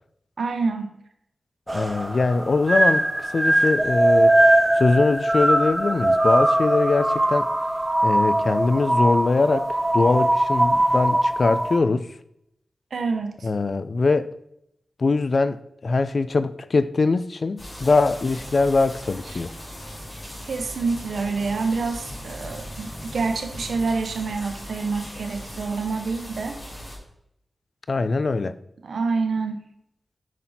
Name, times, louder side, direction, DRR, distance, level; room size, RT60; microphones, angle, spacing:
voice 1, 0.4-1.0 12.9-13.5 20.4-26.6 28.8-29.6, right 4 dB, 90° right, 1.0 m, -27 dB
voice 2, 1.7-4.4 4.7-7.5 8.0-12.1 13.4-14.3 15.0-19.5 27.9-28.5, left 3 dB, 60° left, 0.5 m, -22 dB
sound 1, 1.7-11.8, right 1 dB, 25° right, 0.8 m, -21 dB
sound 2, 17.6-27.0, equal, 30° left, 3.3 m, -38 dB
9.1 x 6.2 x 4.3 m
cardioid pair, 55°, 0 cm